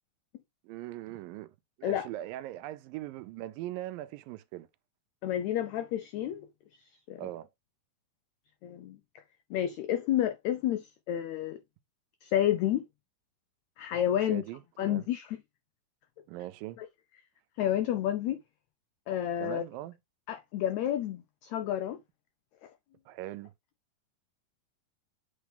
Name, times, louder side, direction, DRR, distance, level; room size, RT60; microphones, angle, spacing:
voice 1, 0.6-4.7 7.2-7.5 14.2-15.1 16.3-16.8 19.4-20.0 23.1-23.5, right 15 dB, 85° right, 2.3 m, -40 dB
voice 2, 5.2-6.5 7.1-7.2 8.6-9.0 9.5-11.6 12.2-12.8 13.8-14.4 14.8-15.4 16.8-16.9 17.6-18.4 19.1-19.6 20.3-22.0, left 11 dB, 85° left, 1.6 m, -30 dB
8.6 x 4.1 x 3.4 m
omnidirectional pair, 4.0 m